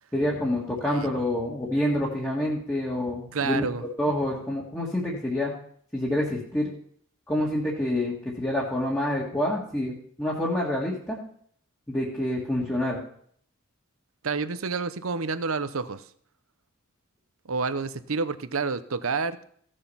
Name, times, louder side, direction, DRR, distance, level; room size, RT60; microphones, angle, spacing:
voice 1, 0.1-3.6 4.0-5.5 5.9-6.7 7.3-11.2 11.9-13.0, left 1 dB, 10° left, -5 dB, 1.8 m, -27 dB
voice 2, 3.3-3.8 14.2-16.0 17.5-19.4, right 4 dB, 75° right, 13 dB, 0.8 m, -29 dB
16.0 x 6.6 x 5.6 m, 0.63 s
head